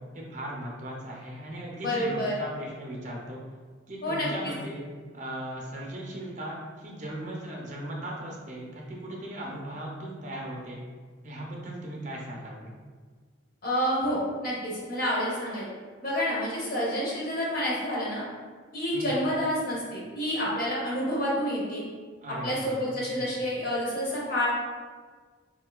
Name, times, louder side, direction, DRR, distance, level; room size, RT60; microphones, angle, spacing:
voice 1, 0.1-3.4 3.9-4.8 5.1-10.8 11.2-12.8 18.9-19.1 22.2-23.3, right 1 dB, 35° right, -2 dB, 0.5 m, -38 dB
voice 2, 1.8-2.3 4.0-4.5 13.6-15.7 16.0-18.2 18.7-21.9 22.4-24.5, equal, 45° left, -5 dB, 0.8 m, -29 dB
3.7 x 2.6 x 2.2 m, 1.5 s
head